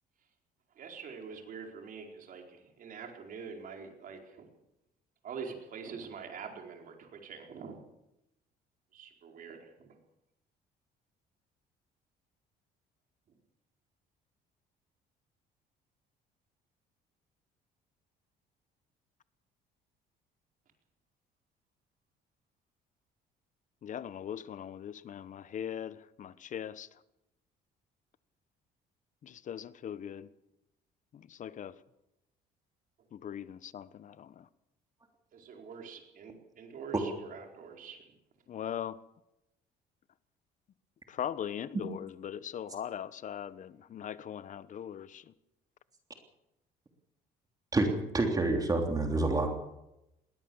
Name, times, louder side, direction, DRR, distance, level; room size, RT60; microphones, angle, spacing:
voice 1, 0.7-4.4 5.2-7.8 8.9-10.0 35.3-38.1, right 6 dB, 55° right, 4.6 m, -45 dB
voice 2, 23.8-26.9 29.2-30.3 31.1-31.8 33.1-34.5 38.5-39.0 41.1-45.3, left 9 dB, 50° left, 1.0 m, -40 dB
voice 3, 47.7-49.5, right 2 dB, 20° right, 3.3 m, -28 dB
21.0 x 17.5 x 7.2 m
cardioid pair, 110°, 17 cm